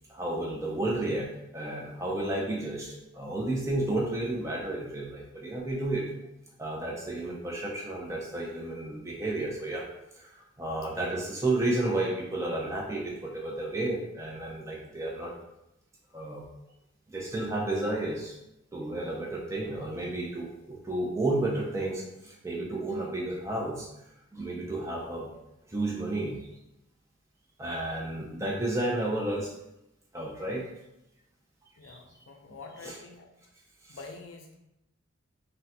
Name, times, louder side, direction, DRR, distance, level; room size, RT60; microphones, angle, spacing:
voice 1, 0.1-1.3 1.5-6.0 6.6-9.8 10.1-15.3 16.1-16.5 17.1-18.4 18.7-23.9 24.3-25.3 25.7-26.4 27.6-29.5 30.1-30.7 31.8-32.2 32.8-33.0 33.9-34.0, right 2 dB, 15° right, -2 dB, 0.5 m, -32 dB
voice 2, 31.8-33.3 33.9-34.6, left 3 dB, 70° left, 3 dB, 0.4 m, -46 dB
3.7 x 2.1 x 2.7 m, 0.87 s
head